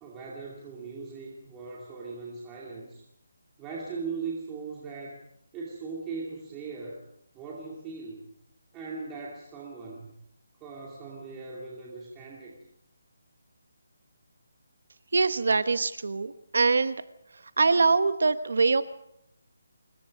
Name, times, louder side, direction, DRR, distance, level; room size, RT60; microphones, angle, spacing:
voice 1, 0.0-3.0 3.6-5.2 5.5-7.0 7.3-8.2 8.7-10.1 10.6-12.6, right 4 dB, 10° right, -4 dB, 2.5 m, -39 dB
voice 2, 15.1-16.9 17.6-18.8, right 4 dB, 55° right, 12 dB, 1.2 m, -23 dB
26.5 x 22.5 x 5.3 m, 0.75 s
hypercardioid pair, 180°, 0 cm